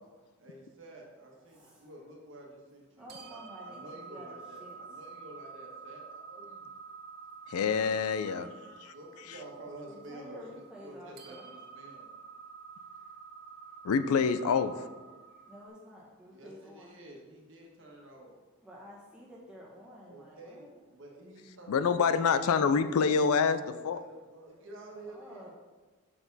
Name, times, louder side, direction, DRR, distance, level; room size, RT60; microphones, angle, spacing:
voice 1, 0.4-6.7 8.9-12.1 16.3-18.3 20.1-22.2 23.9-25.5, right 1 dB, 60° right, 0 dB, 1.4 m, -50 dB
voice 2, 1.5-1.9 3.0-5.0 7.1-7.2 9.9-11.5 12.2-12.3 13.0-13.1 13.6-13.8 15.3-16.9 18.6-20.7 25.0-25.5, equal, 5° right, -6 dB, 1.5 m, -51 dB
sound 1, 3.1-15.7, right 5 dB, 45° right, 0.7 m, -49 dB
voice 3, 7.5-8.5 8.8-8.9 13.8-14.7 21.7-24.0, left 5 dB, 85° left, 12 dB, 0.4 m, -26 dB
6.9 x 6.0 x 4.0 m, 1.3 s
head